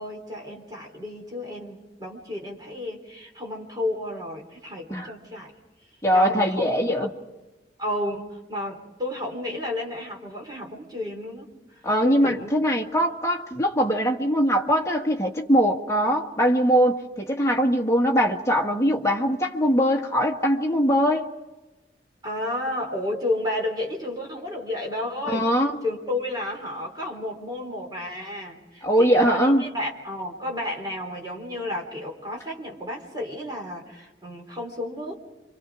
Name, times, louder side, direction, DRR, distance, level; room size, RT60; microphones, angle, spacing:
voice 1, 0.0-5.5 6.1-7.0 7.8-11.5 12.0-12.6 22.2-25.5 25.8-35.1, left 1 dB, 25° right, 0 dB, 4.0 m, -32 dB
voice 2, 6.0-7.1 11.8-21.3 25.3-25.8 28.8-29.7, equal, 15° left, 0 dB, 1.6 m, -21 dB
28.5 x 25.5 x 4.9 m, 1.1 s
head